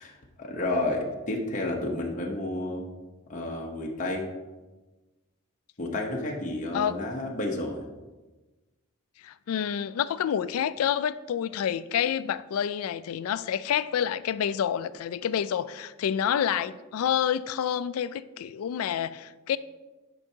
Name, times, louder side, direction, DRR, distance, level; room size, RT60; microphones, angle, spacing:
voice 1, 0.0-2.8 3.3-4.2 5.8-7.9, left 2 dB, 35° left, 0.8 m, -31 dB
voice 2, 9.2-19.6, left 9 dB, 85° left, 0.3 m, -28 dB
10.5 x 5.4 x 2.8 m
head